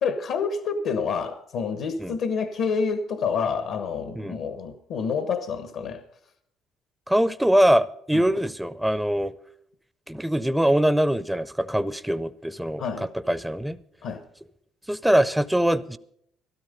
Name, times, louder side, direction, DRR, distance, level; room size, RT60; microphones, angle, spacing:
voice 1, 0.0-6.0 8.1-8.3 12.8-13.1 14.0-14.2, left 5 dB, 70° left, 1.2 m, -28 dB
voice 2, 7.1-9.3 10.1-12.8 13.3-13.8 14.9-16.0, right 1 dB, 5° right, 0.7 m, -22 dB
13.5 x 12.5 x 5.3 m
supercardioid pair, 75°, 0 cm